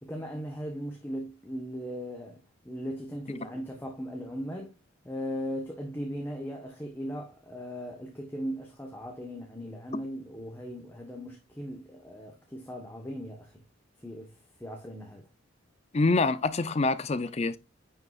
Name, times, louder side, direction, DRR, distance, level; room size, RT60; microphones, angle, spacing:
voice 1, 0.0-4.8 5.0-13.6 14.0-15.2, equal, 10° left, 1.0 m, -38 dB
voice 2, 15.9-17.6, left 3 dB, 30° left, 0.4 m, -26 dB
9.5 x 5.6 x 2.4 m
head